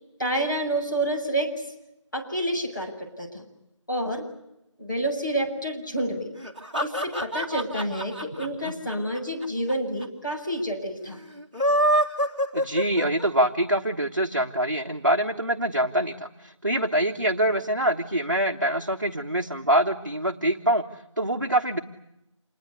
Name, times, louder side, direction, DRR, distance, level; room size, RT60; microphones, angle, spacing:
voice 1, 0.2-1.5 2.1-3.4 3.9-4.2 4.8-6.3 6.8-11.2, right 1 dB, 40° left, 0 dB, 7.5 m, -28 dB
sound 1, 6.4-9.7 10.0-10.1 10.3-10.4 11.4-13.5, equal, 15° right, 2.6 m, -25 dB
voice 2, 12.5-21.8, right 1 dB, 40° right, 2 dB, 1.5 m, -25 dB
27.5 x 21.0 x 9.9 m, 0.86 s
figure-of-eight pair, 175°, 16 cm